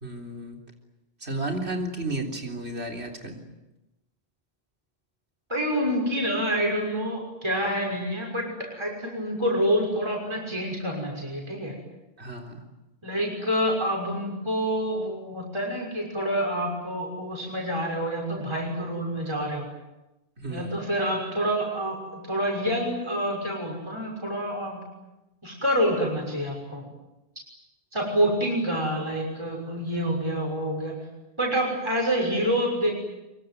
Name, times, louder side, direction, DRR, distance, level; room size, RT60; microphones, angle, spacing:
voice 1, 0.0-0.6 1.2-3.4 12.2-12.6 20.4-20.8, right 2 dB, 90° right, 2 dB, 4.0 m, -33 dB
voice 2, 5.5-11.7 13.0-19.7 20.5-24.8 25.4-26.8 27.9-30.9 31.4-32.9, equal, 25° right, -1 dB, 6.3 m, -27 dB
24.0 x 24.0 x 9.4 m, 0.97 s
omnidirectional pair, 1.1 m